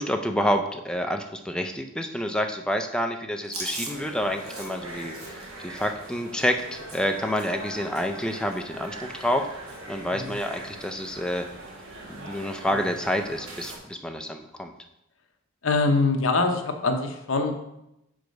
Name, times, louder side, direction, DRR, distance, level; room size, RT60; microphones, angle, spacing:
voice 1, 0.0-11.4 12.1-14.7, equal, 5° left, 5 dB, 0.4 m, -28 dB
Chewing mastication, 3.4-7.7 7.9-8.2 8.5-9.4 9.7-10.0 10.2-10.9 11.3-11.5 12.5-12.9, right 2 dB, 85° right, 1.5 m, -41 dB
sound 1, 3.9-13.8, right 1 dB, 60° right, 1.2 m, -41 dB
voice 2, 15.6-17.5, left 3 dB, 65° left, 5 dB, 0.8 m, -24 dB
4.9 x 4.6 x 5.2 m, 0.86 s
head